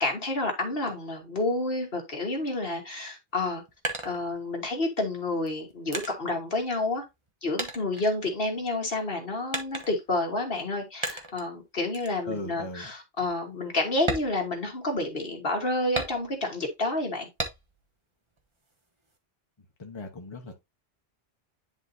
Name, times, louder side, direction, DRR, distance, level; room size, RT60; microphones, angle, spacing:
voice 1, 0.0-3.6 4.0-7.0 7.4-17.3, left 2 dB, 60° left, 1.8 m, -29 dB
sound 1, 3.3-4.8 5.4-7.3 7.6-8.7 9.5-10.2 11.0-11.5 11.9-12.2 12.6-12.7 13.2-13.3 14.0-15.2 16.0-16.6 17.4-17.9 18.3-19.2, right 2 dB, 25° right, 1.2 m, -36 dB
voice 2, 12.2-12.9 19.8-20.6, left 2 dB, 25° left, 1.0 m, -38 dB
10.5 x 4.0 x 2.7 m
omnidirectional pair, 1.1 m